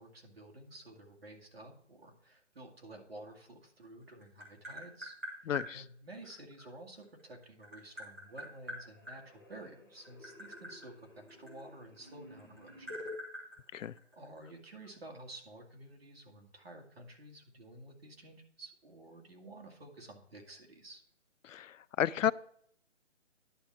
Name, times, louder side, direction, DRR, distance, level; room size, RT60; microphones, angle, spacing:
voice 1, 0.0-13.0 14.1-21.0, right 1 dB, 50° right, 2 dB, 2.0 m, -52 dB
Tap, 3.8-5.7 7.0-9.2 9.9-12.1 12.4-14.4, equal, 10° right, 0.9 m, -45 dB
voice 2, 5.5-5.8 13.7-13.9 21.4-22.3, left 10 dB, 85° left, 20 dB, 0.5 m, -32 dB
sound 1, 7.2-7.7 8.0-13.2, left 2 dB, 15° left, 0.8 m, -52 dB
10.5 x 4.5 x 5.8 m, 0.63 s
hypercardioid pair, 175°, 37 cm